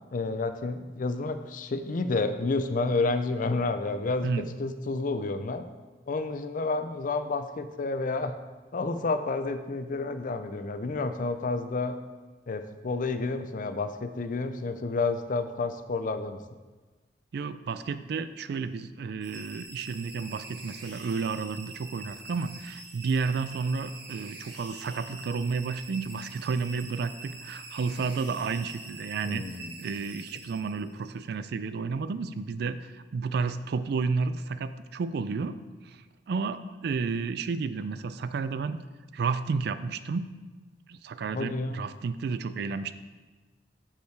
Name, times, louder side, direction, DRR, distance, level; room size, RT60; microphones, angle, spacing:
voice 1, 0.1-5.7 6.1-8.3 8.7-12.0 12.5-16.4 29.3-29.8 41.3-41.8, left 3 dB, 50° left, 10 dB, 0.5 m, -30 dB
voice 2, 17.3-35.6 35.9-38.8 39.1-40.3 40.9-42.9, right 4 dB, 65° right, 12 dB, 0.4 m, -31 dB
sound 1, 19.2-31.1, right 3 dB, 85° right, 1.5 m, -45 dB
6.6 x 5.6 x 4.6 m, 1.3 s
head